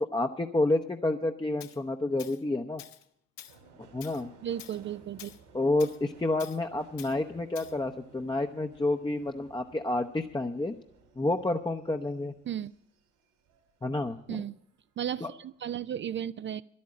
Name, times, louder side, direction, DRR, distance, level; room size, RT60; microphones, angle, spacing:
voice 1, 0.0-2.8 3.9-4.3 5.5-10.7 11.2-12.3 13.8-14.4 15.2-15.3, left 2 dB, 10° left, 3 dB, 0.8 m, -29 dB
Tools, 1.6-1.8 2.2-2.4 2.8-3.0 3.4-3.6 4.0-4.2 4.6-4.8 5.2-5.4 5.8-6.0 6.4-6.6 7.0-7.1 7.5-7.7, left 12 dB, 70° left, 0.8 m, -47 dB
Subway metro underground, 3.5-14.2 14.6-15.3 15.5-15.7, right 3 dB, 75° right, 2.6 m, -58 dB
voice 2, 4.4-5.3 12.5-12.7 14.3-14.6 15.0-16.6, right 10 dB, 35° right, 16 dB, 0.4 m, -34 dB
11.5 x 8.6 x 8.7 m, 0.72 s
figure-of-eight pair, 40°, 36 cm